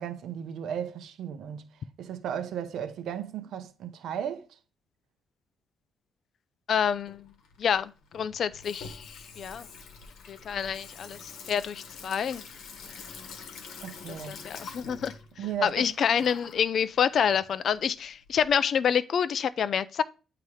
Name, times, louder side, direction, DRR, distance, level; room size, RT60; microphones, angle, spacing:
voice 1, 0.0-4.6 13.8-14.4 15.4-15.9, right 9 dB, 75° right, 0.6 m, -35 dB
voice 2, 6.7-7.3 7.6-9.7 10.3-12.4 14.3-15.1 15.6-20.0, left 7 dB, 60° left, 0.4 m, -27 dB
Water tap faucet / Sink (filling or washing), 6.8-18.5, left 5 dB, 85° left, 1.0 m, -46 dB
8.4 x 2.9 x 4.8 m
cardioid pair, 90°, 0 cm